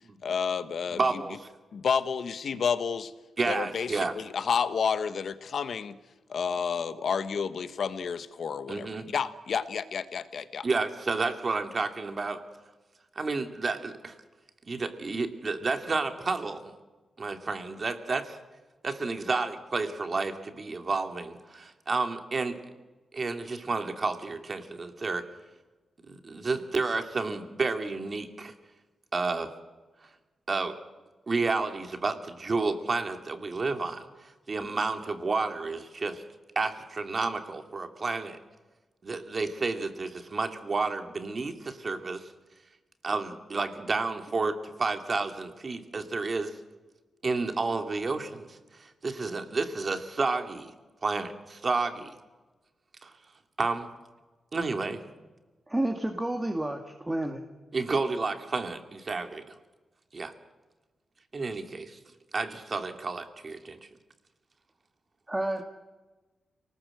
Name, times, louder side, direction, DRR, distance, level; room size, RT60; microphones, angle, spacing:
voice 1, 0.2-1.2 1.7-3.1 3.4-6.0 6.3-10.7, left 6 dB, 70° left, 12 dB, 1.4 m, -30 dB
voice 2, 0.9-1.5 3.4-4.1 8.7-9.0 10.6-12.4 13.2-14.2 14.7-16.6 17.2-18.4 18.8-22.6 23.1-25.2 26.0-28.5 29.1-29.5 30.5-30.8 31.3-36.2 36.5-38.4 39.0-42.3 43.0-46.6 47.2-50.7 51.0-52.1 53.0-53.1 53.6-53.9 54.5-55.0 57.7-59.4 60.1-60.3 61.3-62.0 62.3-63.9, right 3 dB, 40° right, 7 dB, 2.6 m, -31 dB
voice 3, 55.7-57.4 65.3-65.6, right 1 dB, 15° right, 4 dB, 2.1 m, -30 dB
29.0 x 19.5 x 7.9 m, 1.2 s
wide cardioid pair, 120°, 0 cm